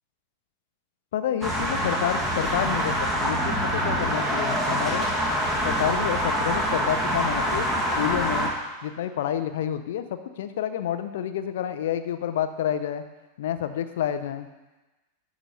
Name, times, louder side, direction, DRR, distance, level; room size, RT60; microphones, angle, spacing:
voice 1, 1.1-5.1 5.6-7.7 8.0-8.5 8.8-13.0 13.4-14.5, left 10 dB, 55° left, 9 dB, 0.6 m, -29 dB
sound 1, 1.4-8.5, equal, 10° right, 1.8 m, -25 dB
11.5 x 4.0 x 5.4 m, 1.1 s
figure-of-eight pair, 90°, 0 cm